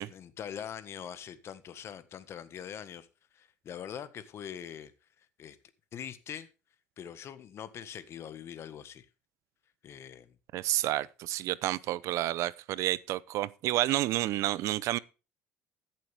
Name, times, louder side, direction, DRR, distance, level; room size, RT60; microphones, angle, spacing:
voice 1, 0.0-3.1 3.3-4.9 5.2-5.6 5.9-6.5 7.0-9.1 9.8-10.3, left 9 dB, 55° left, 1.5 m, -43 dB
voice 2, 10.5-15.0, right 15 dB, 75° right, 0.6 m, -30 dB
14.0 x 7.7 x 3.5 m
supercardioid pair, 85°, 5 cm